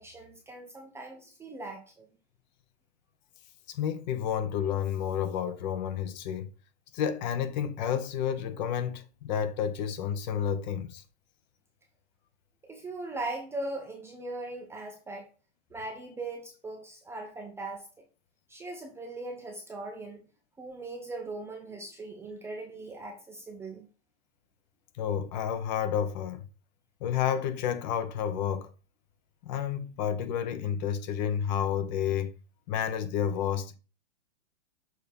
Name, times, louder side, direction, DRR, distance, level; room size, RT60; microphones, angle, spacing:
voice 1, 0.0-2.1 12.7-15.3 15.7-17.8 18.5-20.2 20.6-23.9, right 2 dB, 5° right, 0.5 m, -39 dB
voice 2, 3.7-6.5 6.9-11.0 25.0-26.4 27.0-28.7 29.4-32.3 32.7-33.7, left 8 dB, 40° left, 0.8 m, -30 dB
6.6 x 2.7 x 5.2 m
hypercardioid pair, 150°, 36 cm